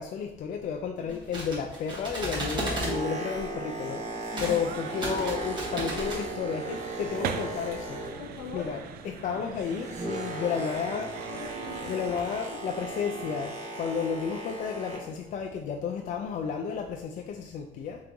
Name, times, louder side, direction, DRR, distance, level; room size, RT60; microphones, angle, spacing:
voice 1, 0.0-4.0 4.4-8.0 8.5-11.1 11.9-13.5 13.8-18.0, left 6 dB, 50° left, 3 dB, 0.4 m, -32 dB
sound 1, 1.1-3.0 4.3-4.6 4.9-6.2, right 1 dB, 25° right, 1.5 m, -34 dB
Boat Water vehicle, 2.5-8.5 8.8-15.2 15.9-16.0, right 2 dB, 45° right, 1.2 m, -37 dB
voice 2, 4.3-4.8 7.9-8.8 9.1-9.4 10.1-10.6 11.1-12.0 12.5-12.6, left 4 dB, 70° left, 1 dB, 1.1 m, -42 dB
sound 2, 4.4-12.5, right 7 dB, 60° right, 0.4 m, -41 dB
3.5 x 3.1 x 3.8 m, 0.88 s
cardioid pair, 110°, 17 cm